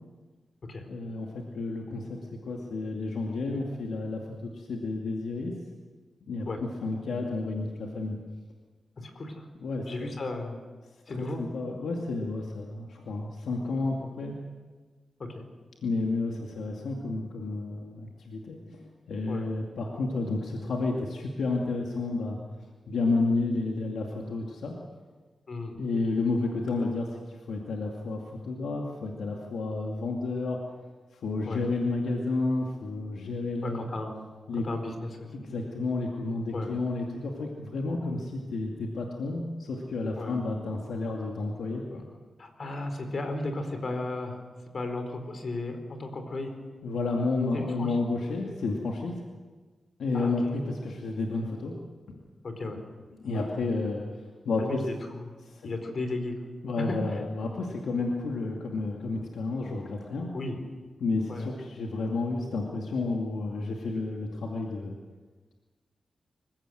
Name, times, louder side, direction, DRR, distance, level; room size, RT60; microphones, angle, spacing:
voice 1, 0.9-1.3 1.5-2.2 2.5-5.5 6.3-8.2 9.6-10.1 11.1-14.4 15.8-18.6 19.1-22.4 22.9-24.7 25.8-27.1 27.5-30.6 31.2-33.9 34.5-34.7 35.3-42.0 46.8-49.2 50.0-51.7 52.1-52.2 53.2-54.0 54.4-54.8 55.4-55.6 56.6-60.3 61.0-64.9, left 3 dB, 90° left, 0 dB, 2.4 m, -31 dB
voice 2, 9.0-9.4 9.9-10.6 11.1-11.4 15.3-15.4 19.3-19.5 25.5-25.8 31.5-31.6 33.6-34.2 34.6-35.3 36.5-36.7 40.2-40.4 42.4-44.4 44.7-46.5 47.5-48.0 50.1-50.5 52.4-52.8 53.3-53.5 54.6-55.3 55.6-56.3 56.9-57.2 60.3-60.6 61.3-61.6, left 2 dB, 60° left, 6 dB, 4.5 m, -35 dB
25.5 x 16.5 x 7.9 m, 1.4 s
cardioid pair, 65°, 0 cm